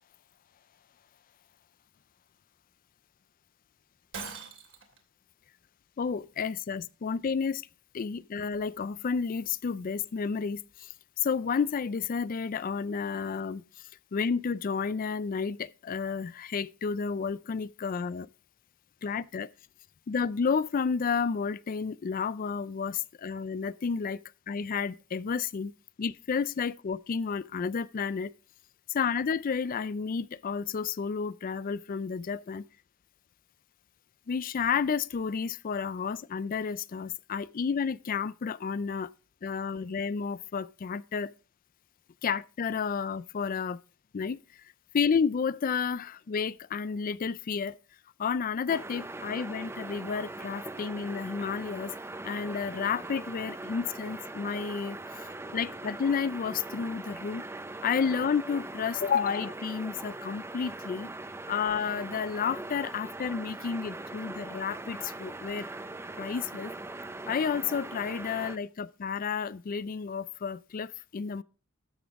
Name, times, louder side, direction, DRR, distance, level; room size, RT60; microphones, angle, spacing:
Shatter, 4.1-5.0, right 5 dB, 60° right, 2.7 m, -41 dB
voice 1, 6.0-7.7 7.9-10.9 11.2-18.3 19.0-19.5 20.1-25.7 26.0-28.3 28.9-32.6 34.3-39.1 39.4-41.3 42.2-43.8 44.1-44.4 44.9-47.8 48.2-51.9 52.2-55.0 55.5-57.4 57.8-61.1 61.5-65.7 66.2-66.7 67.3-71.4, left 6 dB, 45° left, 0.4 m, -31 dB
sound 1, 48.7-68.6, right 2 dB, 10° right, 0.6 m, -41 dB
13.0 x 7.1 x 3.5 m
head